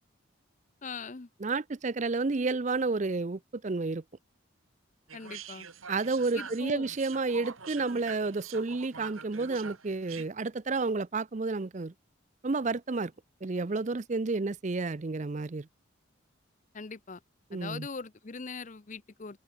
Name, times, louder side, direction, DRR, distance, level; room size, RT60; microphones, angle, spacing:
voice 1, 0.8-1.3 5.1-5.7 6.3-6.9 16.7-17.2 17.5-19.4, left 4 dB, 40° left, 0.7 m, -41 dB
voice 2, 1.4-4.0 5.9-11.9 12.4-13.1 13.4-15.7 17.5-17.9, right 3 dB, 35° right, 0.5 m, -31 dB
sound 1, 5.1-10.3, right 6 dB, 90° right, 3.1 m, -45 dB
open air
head